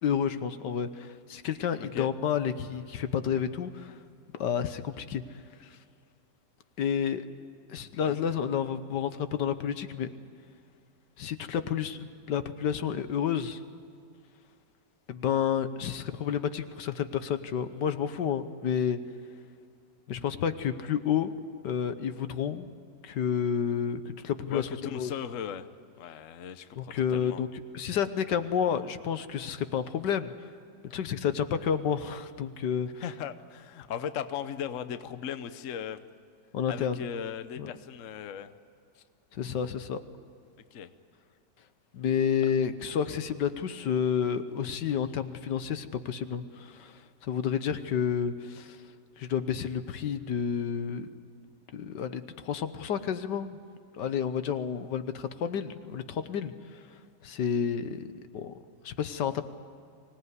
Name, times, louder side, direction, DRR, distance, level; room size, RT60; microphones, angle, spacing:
voice 1, 0.0-4.0 4.3-5.8 6.8-7.2 7.7-10.1 11.2-13.6 15.1-19.0 20.1-21.3 21.6-22.7 23.0-24.7 24.9-25.1 26.7-27.5 27.7-30.3 30.8-33.0 36.5-37.0 37.6-37.7 39.3-40.0 41.9-48.8 49.2-51.1 51.7-53.6 54.0-56.8 57.2-58.5 58.8-59.4, left 8 dB, 75° left, 11 dB, 1.6 m, -30 dB
voice 2, 24.5-25.7 26.0-27.4 33.0-36.0 36.7-38.5 39.0-39.1 40.7-40.9, left 8 dB, 55° left, 11 dB, 1.1 m, -37 dB
24.5 x 18.0 x 9.6 m, 2.3 s
omnidirectional pair, 1.9 m